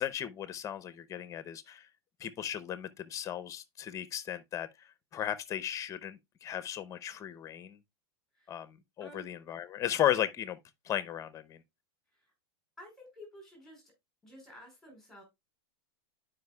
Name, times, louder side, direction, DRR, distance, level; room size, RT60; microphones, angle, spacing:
voice 1, 0.0-1.9 2.2-7.8 8.5-10.6 10.8-11.6, left 11 dB, 25° left, 0.8 m, -35 dB
voice 2, 12.8-13.8 14.2-15.2, equal, 5° left, 4.3 m, -52 dB
11.5 x 5.1 x 2.3 m
supercardioid pair, 135°, 14 cm